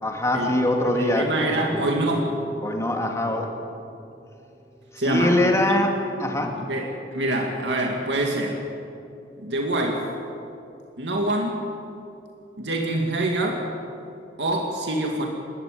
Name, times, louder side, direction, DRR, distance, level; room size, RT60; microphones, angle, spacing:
voice 1, 0.0-1.3 2.6-3.5 5.0-6.6, left 1 dB, 15° left, 2 dB, 2.5 m, -23 dB
voice 2, 0.9-2.4 5.0-5.4 6.7-8.6 9.4-10.0 11.0-11.6 12.6-13.7 14.4-15.3, right 1 dB, 70° right, 1 dB, 2.4 m, -25 dB
sound 1, 1.7-5.3, right 1 dB, 5° right, 1.0 m, -37 dB
29.0 x 13.0 x 9.3 m, 2.7 s
head